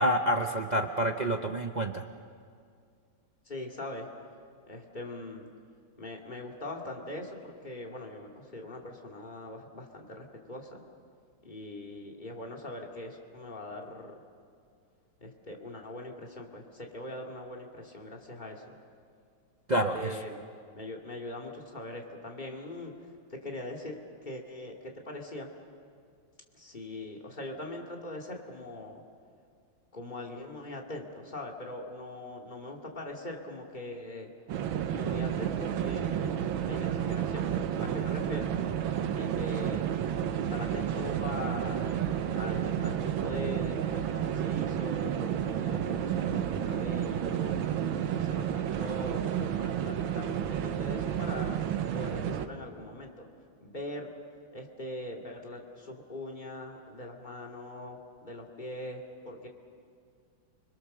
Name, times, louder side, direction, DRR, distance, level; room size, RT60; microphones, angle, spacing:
voice 1, 0.0-2.0 19.7-20.1, right 1 dB, 55° right, 4 dB, 0.4 m, -28 dB
voice 2, 3.5-4.1 4.7-5.5 6.0-10.8 11.4-14.2 15.2-18.8 19.9-20.4 20.7-25.5 26.5-29.0 29.9-34.3 34.9-38.5 39.1-39.8 40.3-41.8 42.4-47.6 48.2-51.6 51.9-53.3 53.6-54.1 54.5-59.5, left 1 dB, 25° left, 0 dB, 2.5 m, -41 dB
sound 1, 34.5-52.5, right 9 dB, 85° right, 1.7 m, -31 dB
30.0 x 21.5 x 6.7 m, 2.2 s
omnidirectional pair, 2.1 m